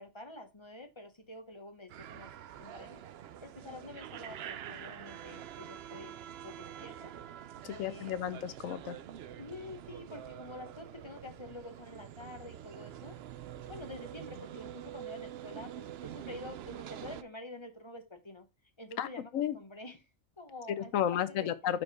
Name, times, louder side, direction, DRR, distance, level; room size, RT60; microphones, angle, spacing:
voice 1, 0.0-2.3 2.6-3.0 3.4-6.1 6.4-7.1 7.7-8.2 9.4-13.2 13.7-18.5 18.8-20.1 20.4-21.5, left 2 dB, 25° left, 1.1 m, -48 dB
sound 1, 1.9-17.2, right 10 dB, 65° right, 0.7 m, -46 dB
voice 2, 7.6-9.0 19.0-19.1 19.3-19.6 20.9-21.8, left 10 dB, 80° left, 1.1 m, -32 dB
5.9 x 5.2 x 4.6 m
omnidirectional pair, 1.4 m